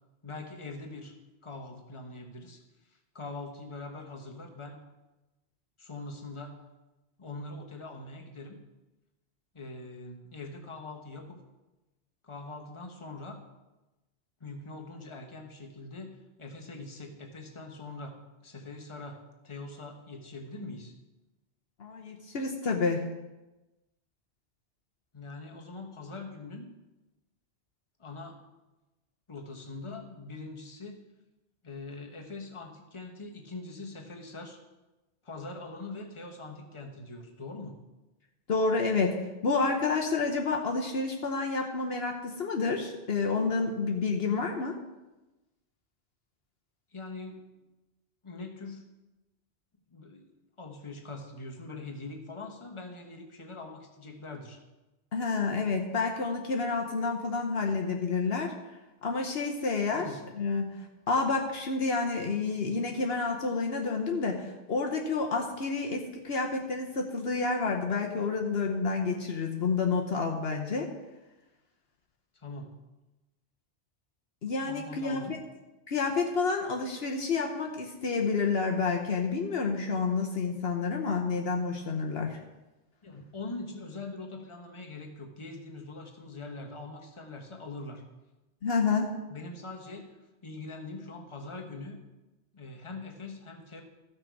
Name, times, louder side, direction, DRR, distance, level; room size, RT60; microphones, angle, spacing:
voice 1, 0.2-1.1 1.4-2.6 3.1-4.8 5.8-6.6 7.2-8.6 9.5-11.4 12.2-13.4 14.4-16.1 16.4-20.9 25.1-26.7 28.0-28.4 29.3-31.0 31.6-34.6 35.2-37.8 46.9-47.5 48.2-48.8 49.9-50.3 50.6-54.6 60.0-60.2 72.3-72.7 74.6-75.3 83.0-88.0 89.3-90.1 90.4-92.0 92.5-93.8, left 3 dB, 25° left, 1 dB, 1.3 m, -42 dB
voice 2, 21.8-23.0 38.5-39.2 39.4-44.8 55.1-58.5 59.0-60.1 60.3-60.7 61.1-70.9 74.4-75.2 75.9-82.4 88.6-89.1, left 4 dB, 65° left, 1 dB, 1.2 m, -29 dB
14.5 x 6.2 x 4.7 m, 1.1 s
omnidirectional pair, 1.2 m